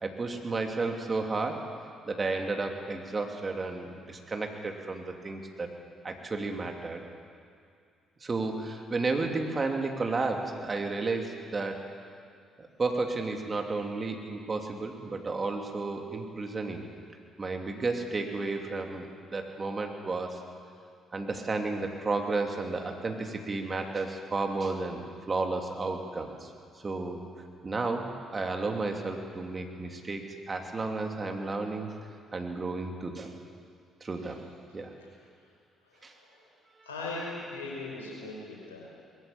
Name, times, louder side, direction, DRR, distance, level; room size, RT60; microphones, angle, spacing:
voice 1, 0.0-1.6 2.0-5.7 6.0-7.0 8.2-11.8 12.8-16.8 17.4-20.4 21.1-26.5 26.8-27.2 27.6-28.0 28.3-31.9 32.3-33.3 34.0-34.4 34.7-34.9 36.0-36.1, right 3 dB, 35° right, 3 dB, 2.8 m, -32 dB
voice 2, 35.8-36.5 36.8-38.9, left 2 dB, 85° left, -3 dB, 5.1 m, -40 dB
21.0 x 14.5 x 8.6 m, 2.3 s
hypercardioid pair, 45°, 0 cm